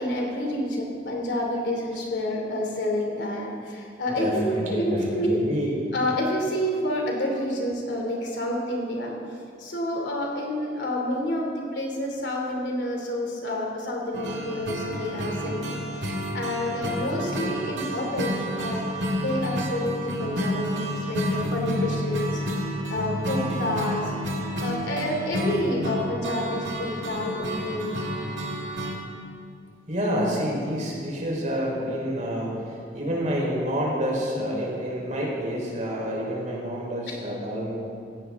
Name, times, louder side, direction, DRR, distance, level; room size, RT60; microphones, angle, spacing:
voice 1, 0.0-5.4 5.9-9.1 9.6-18.9 19.2-22.4 22.9-24.1 24.6-28.0 37.1-37.2, left 1 dB, 75° left, 0 dB, 2.9 m, -29 dB
voice 2, 4.2-5.9 29.9-37.7, equal, 45° right, -3 dB, 4.1 m, -28 dB
Experimental Psychedelic Acoustic Sketch, 14.1-29.0, equal, 90° right, 1.9 m, -30 dB
17.5 x 15.0 x 3.7 m, 2.4 s
head